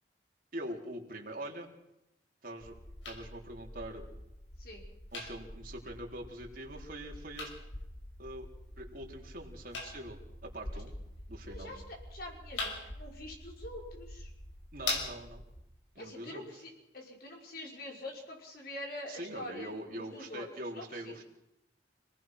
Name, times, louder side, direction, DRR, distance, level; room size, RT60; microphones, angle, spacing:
voice 1, 0.5-1.7 2.4-2.7 3.0-4.0 5.1-7.5 8.2-8.5 8.8-11.0 11.3-11.7 14.7-15.4 15.9-16.4 19.1-21.2, right 1 dB, 50° right, 0 dB, 3.9 m, -43 dB
sound 1, 2.6-15.6, left 2 dB, 90° left, 5.8 m, -43 dB
voice 2, 11.5-14.3 16.0-21.2, left 1 dB, 55° left, 0 dB, 5.5 m, -45 dB
28.5 x 19.0 x 6.2 m, 0.87 s
head